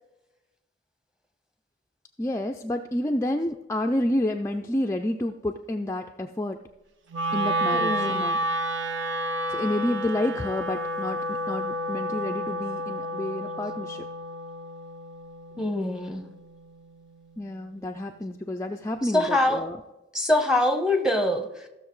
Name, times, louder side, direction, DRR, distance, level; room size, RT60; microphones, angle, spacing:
voice 1, 2.2-6.6 7.3-8.4 9.5-14.0 17.4-19.8, left 1 dB, 15° left, 3 dB, 0.4 m, -29 dB
Wind instrument woodwind instrument, 7.1-17.3, equal, 75° right, 0.7 m, -30 dB
voice 2, 7.7-8.3 15.6-16.2 19.0-19.7 20.1-21.7, left 1 dB, 5° right, 5 dB, 0.9 m, -24 dB
15.5 x 6.5 x 3.1 m, 1.0 s
head